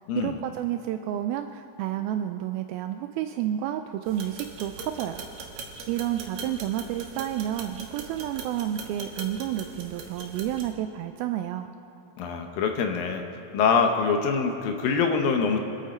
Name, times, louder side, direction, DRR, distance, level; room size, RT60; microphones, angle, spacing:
voice 1, 0.2-5.2 5.9-11.7, right 11 dB, 85° right, 8 dB, 2.2 m, -30 dB
sound 1, 4.1-10.7, right 4 dB, 65° right, 2.7 m, -41 dB
voice 2, 12.2-13.2 13.5-15.6, left 5 dB, 70° left, 4 dB, 2.4 m, -24 dB
25.5 x 12.0 x 4.4 m, 2.8 s
omnidirectional pair, 4.7 m